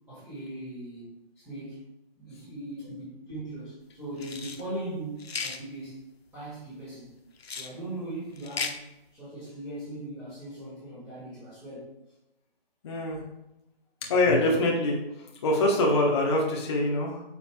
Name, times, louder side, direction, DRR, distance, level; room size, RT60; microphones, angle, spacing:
voice 1, 0.1-1.8 2.2-6.0 6.3-7.1 7.6-8.8 9.1-11.9, right 1 dB, 5° right, -14 dB, 1.9 m, -39 dB
sound 1, 4.2-4.6 5.2-5.6 7.4-7.7 8.4-8.8, left 5 dB, 80° left, 0.8 m, -35 dB
voice 2, 12.8-13.2 14.0-17.2, left 1 dB, 25° left, -1 dB, 0.9 m, -24 dB
8.7 x 5.5 x 2.2 m, 0.91 s
figure-of-eight pair, 155°, 31 cm